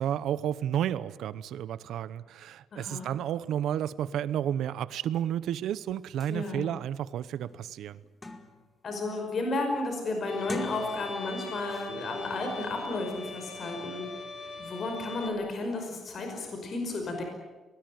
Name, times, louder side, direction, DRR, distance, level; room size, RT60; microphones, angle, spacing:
voice 1, 0.0-8.0, right 10 dB, 75° right, 17 dB, 0.9 m, -31 dB
voice 2, 2.7-3.1 6.3-6.7 8.8-14.2 14.6-17.2, left 2 dB, 40° left, 3 dB, 5.4 m, -33 dB
sound 1, 5.9-6.0 6.2-6.4 6.9-7.0 7.4-8.8 9.2-9.5 10.3-11.3 11.7-11.9, left 2 dB, 15° left, 2.0 m, -42 dB
Bowed string instrument, 10.3-15.3, left 3 dB, 60° left, 4.2 m, -42 dB
23.0 x 19.5 x 9.4 m, 1.3 s
cardioid pair, 145°, 0 cm